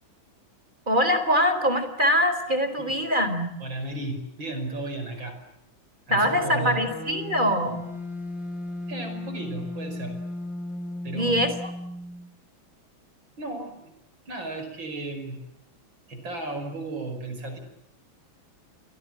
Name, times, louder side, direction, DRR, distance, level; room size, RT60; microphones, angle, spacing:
voice 1, 0.9-3.5 6.1-7.8 11.1-11.7, equal, 20° right, 10 dB, 4.2 m, -23 dB
voice 2, 3.6-5.4 6.1-6.8 8.9-10.1 11.0-11.5 13.4-13.9 14.3-15.4 16.1-17.6, right 2 dB, 65° right, 7 dB, 6.1 m, -34 dB
sound 1, 6.2-12.3, left 2 dB, 60° left, 3.2 m, -35 dB
29.0 x 24.5 x 7.7 m, 0.82 s
omnidirectional pair, 2.2 m